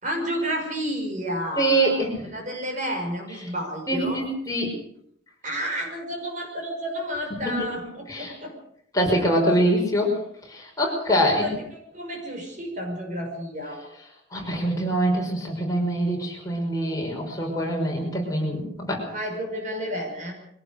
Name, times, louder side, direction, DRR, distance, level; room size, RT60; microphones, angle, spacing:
voice 1, 0.0-2.0 2.3-4.2 5.4-8.5 10.8-13.9 19.1-20.3, equal, 40° right, 2 dB, 6.2 m, -31 dB
voice 2, 1.6-2.3 3.9-4.8 7.4-8.3 8.9-10.2 10.5-11.5 14.3-19.0, right 1 dB, 20° left, -1 dB, 5.8 m, -24 dB
23.5 x 17.5 x 6.7 m, 0.70 s
head